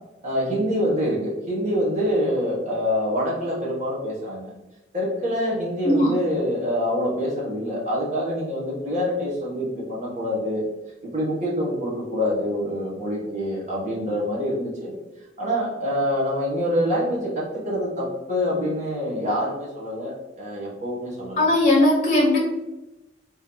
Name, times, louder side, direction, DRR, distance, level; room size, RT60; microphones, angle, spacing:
voice 1, 0.2-4.5 4.9-10.6 11.0-14.9 15.4-21.4, equal, 40° right, -5 dB, 1.3 m, -26 dB
voice 2, 21.4-22.4, left 1 dB, 30° left, -2 dB, 0.9 m, -18 dB
3.4 x 2.9 x 3.8 m, 1.0 s
head